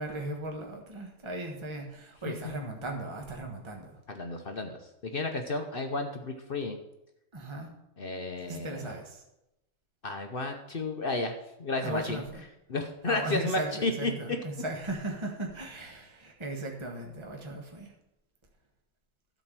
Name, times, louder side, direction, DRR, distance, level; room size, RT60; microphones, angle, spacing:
voice 1, 0.0-4.0 7.3-7.7 8.4-9.2 11.8-12.4 13.1-17.9, right 1 dB, 20° right, 1 dB, 1.3 m, -37 dB
voice 2, 4.1-6.8 8.0-8.9 10.0-12.2 12.7-14.4, left 2 dB, 45° left, 5 dB, 0.9 m, -32 dB
12.0 x 4.5 x 7.5 m, 0.89 s
omnidirectional pair, 1.6 m